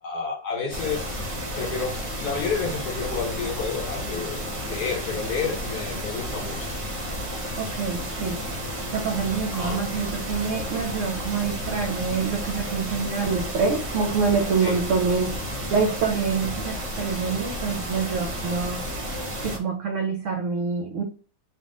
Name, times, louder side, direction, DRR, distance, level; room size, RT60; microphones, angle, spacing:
voice 1, 0.0-1.1 1.6-6.7 9.5-9.8 14.6-14.8, left 5 dB, 70° left, 1 dB, 1.9 m, -30 dB
sound 1, 0.7-19.6, equal, 25° right, 0.7 m, -32 dB
voice 2, 7.6-8.4 8.9-15.4 15.7-18.8 19.4-21.0, right 5 dB, 60° right, 4 dB, 0.8 m, -26 dB
3.5 x 2.6 x 3.7 m, 0.38 s
omnidirectional pair, 1.8 m